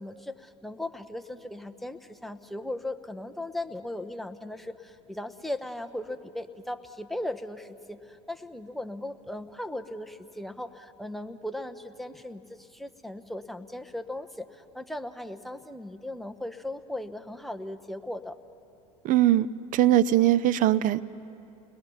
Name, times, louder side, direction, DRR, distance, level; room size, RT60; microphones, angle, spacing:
voice 1, 0.0-18.4, left 1 dB, ahead, 6 dB, 1.1 m, -37 dB
voice 2, 19.0-21.0, right 12 dB, 50° right, 16 dB, 0.7 m, -21 dB
29.5 x 21.5 x 5.8 m, 2.7 s
supercardioid pair, 95°, 17 cm